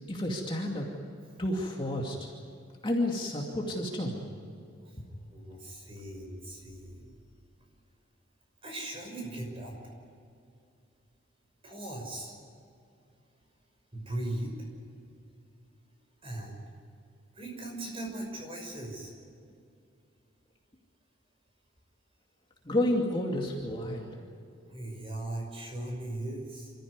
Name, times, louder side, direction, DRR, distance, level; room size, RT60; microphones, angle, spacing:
voice 1, 0.1-0.9 1.4-2.3 2.8-4.3 22.6-24.1, left 1 dB, 25° left, -1 dB, 2.4 m, -30 dB
voice 2, 4.8-7.1 8.6-9.8 11.6-12.4 13.9-14.7 16.2-16.6 17.3-19.1 24.6-26.7, right 1 dB, 25° right, 1 dB, 6.0 m, -39 dB
27.5 x 14.5 x 9.7 m, 2.4 s
head